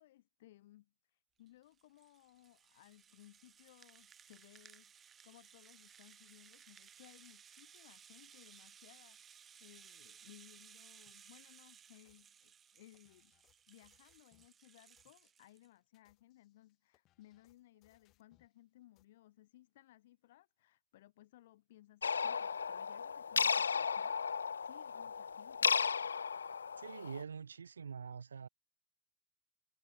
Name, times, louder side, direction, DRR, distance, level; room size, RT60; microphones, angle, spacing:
voice 1, 0.0-13.3 13.7-25.8, left 15 dB, 55° left, 7.1 m, -62 dB
Rattle (instrument), 1.5-15.7, right 8 dB, 20° right, 2.4 m, -60 dB
sound 1, 11.1-11.3 11.9-14.6 15.0-15.3 15.8-18.6 19.0-19.1, left 16 dB, 35° left, 6.1 m, -75 dB
sound 2, 22.0-27.2, left 6 dB, 70° left, 0.4 m, -35 dB
voice 2, 26.8-28.5, right 6 dB, 70° right, 0.7 m, -45 dB
figure-of-eight pair, 90°, 0 cm